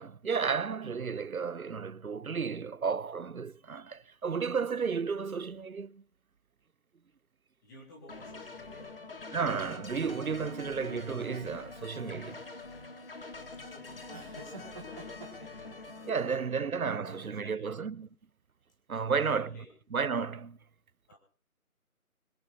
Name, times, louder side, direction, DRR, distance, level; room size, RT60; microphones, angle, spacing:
voice 1, 0.0-6.0 9.3-12.4 16.1-18.1 18.9-19.5 19.9-20.6, right 5 dB, 70° right, 0.9 m, -33 dB
voice 2, 7.6-9.3 13.5-17.7 18.9-19.7 21.1-21.2, left 1 dB, 10° left, 2.9 m, -54 dB
sound 1, 8.1-16.1, left 3 dB, 40° left, 2.0 m, -45 dB
Man Laughts, 11.5-16.8, right 3 dB, 20° right, 2.7 m, -52 dB
22.0 x 11.0 x 4.2 m
figure-of-eight pair, 165°, 43 cm